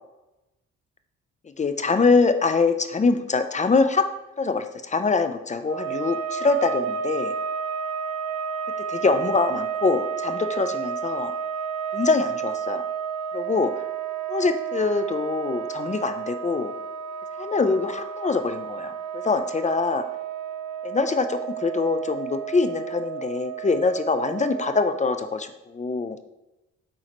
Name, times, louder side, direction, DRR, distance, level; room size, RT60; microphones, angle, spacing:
voice 1, 1.6-4.0 4.4-7.3 8.9-11.3 11.9-12.8 13.3-13.7 14.3-16.7 17.4-20.0 20.8-26.2, left 4 dB, 25° left, 9 dB, 0.4 m, -24 dB
sound 1, 5.6-25.3, right 7 dB, 65° right, 0.6 m, -31 dB
8.6 x 3.8 x 3.0 m, 0.96 s
cardioid pair, 90°, 30 cm